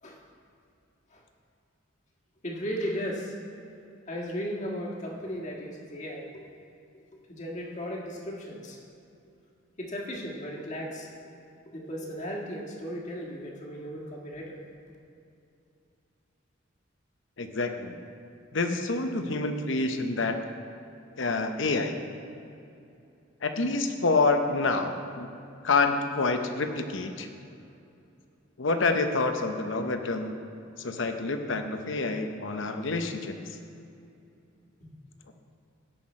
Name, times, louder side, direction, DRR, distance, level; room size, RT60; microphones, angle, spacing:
voice 1, 2.4-3.3 4.1-6.5 6.9-8.8 9.8-11.1 11.6-14.6 34.8-34.9, equal, 40° left, -2 dB, 1.6 m, -36 dB
voice 2, 17.4-18.0 18.5-20.4 21.2-22.0 23.4-25.3 25.6-27.3 28.6-30.3 30.8-33.3, left 3 dB, 70° left, 6 dB, 0.8 m, -27 dB
16.5 x 5.9 x 4.3 m, 2.6 s
head